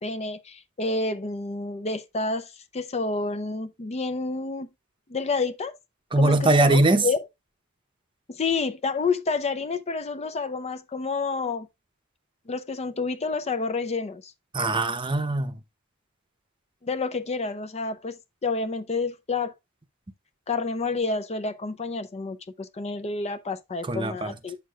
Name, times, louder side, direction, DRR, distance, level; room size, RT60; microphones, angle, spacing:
voice 1, 0.0-4.7 5.1-5.7 6.2-7.2 8.3-11.7 12.5-14.3 16.8-19.5 20.5-24.6, left 4 dB, 30° left, 0.5 m, -29 dB
voice 2, 6.1-7.1 14.5-15.5 23.9-24.3, right 2 dB, 25° right, 0.7 m, -21 dB
8.2 x 6.6 x 2.4 m
head